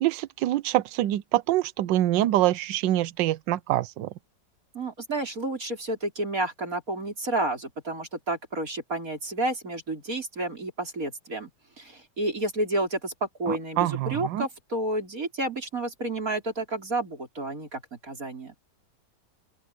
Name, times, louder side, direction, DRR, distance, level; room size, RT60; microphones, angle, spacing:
voice 1, 0.0-4.1 13.5-14.4, right 14 dB, 85° right, 1.4 m, -25 dB
voice 2, 4.7-11.5 11.8-18.6, right 2 dB, 50° right, 5.3 m, -30 dB
open air
omnidirectional pair, 1.9 m